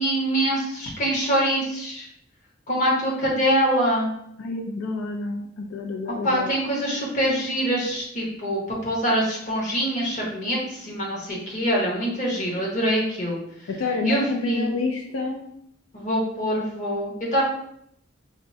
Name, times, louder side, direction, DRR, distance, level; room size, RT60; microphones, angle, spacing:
voice 1, 0.0-2.1 2.7-4.1 6.2-13.4 14.0-14.7 15.9-17.4, equal, 40° left, -4 dB, 1.1 m, -24 dB
voice 2, 4.4-6.5 13.7-15.5, left 3 dB, 90° left, 2 dB, 0.4 m, -29 dB
4.6 x 2.1 x 2.7 m, 0.72 s
head